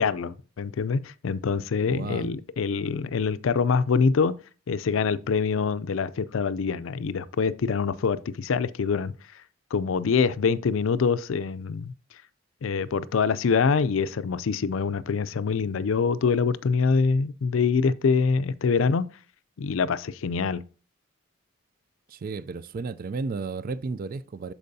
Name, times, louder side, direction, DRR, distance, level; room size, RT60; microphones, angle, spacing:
voice 1, 0.0-4.3 4.7-9.1 9.7-11.9 12.6-19.1 19.6-20.6, left 5 dB, 75° left, 0.4 m, -25 dB
voice 2, 1.9-2.3 22.1-24.5, right 4 dB, 45° right, 0.4 m, -33 dB
12.0 x 4.6 x 2.7 m
head